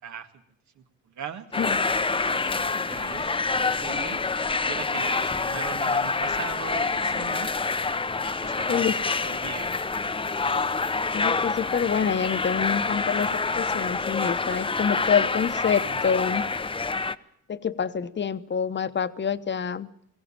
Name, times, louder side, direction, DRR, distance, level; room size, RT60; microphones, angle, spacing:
voice 1, 0.0-0.4 0.8-1.5 2.3-4.2 4.6-7.6 8.4-9.0 9.2-9.9 15.8-16.0, right 7 dB, 70° right, 7 dB, 2.0 m, -40 dB
sound 1, 1.5-17.2, left 4 dB, 15° left, 0.7 m, -27 dB
voice 2, 11.1-13.3 13.6-16.4 17.5-19.9, left 7 dB, 35° left, 12 dB, 1.1 m, -26 dB
20.0 x 16.0 x 8.8 m, 0.74 s
cardioid pair, 90°, 30 cm